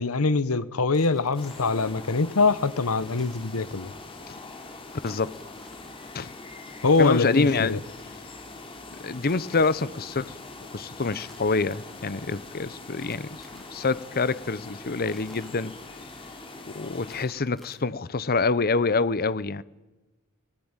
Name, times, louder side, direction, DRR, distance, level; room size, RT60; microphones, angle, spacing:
voice 1, 0.0-3.9 6.8-7.8, left 3 dB, 75° left, 1.0 m, -23 dB
sound 1, 0.9-2.0 2.9-3.9 5.0-5.9 6.9-8.1 8.9-10.0 10.9-11.8 12.9-13.8 14.9-16.0 16.9-18.1, equal, ahead, 4.1 m, -55 dB
sound 2, 1.3-17.3, left 3 dB, 25° left, 3.7 m, -43 dB
voice 2, 5.0-5.3 6.1-6.3 7.0-7.8 9.0-10.3 10.7-13.4 13.7-15.7 16.7-19.6, left 3 dB, 45° left, 0.8 m, -26 dB
25.5 x 19.0 x 9.0 m
head